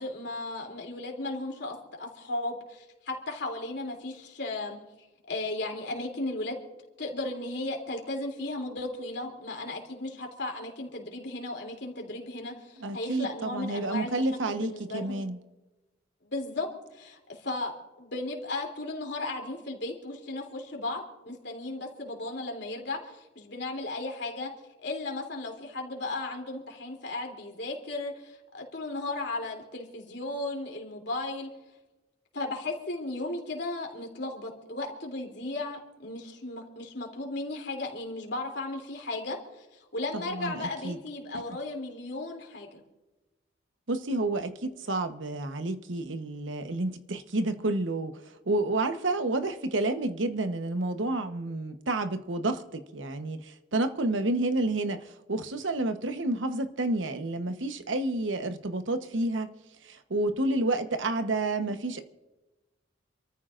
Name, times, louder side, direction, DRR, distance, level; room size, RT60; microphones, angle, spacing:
voice 1, 0.0-4.8 5.3-6.6 7.0-14.1 14.5-15.2 16.2-17.7 18.0-24.5 24.8-31.5 32.3-42.8, left 2 dB, 65° left, 3.1 m, -35 dB
voice 2, 12.8-15.4 40.1-41.0 43.9-48.2 48.5-59.5 59.8-62.0, right 2 dB, 90° right, 1.0 m, -30 dB
28.5 x 14.0 x 2.5 m
head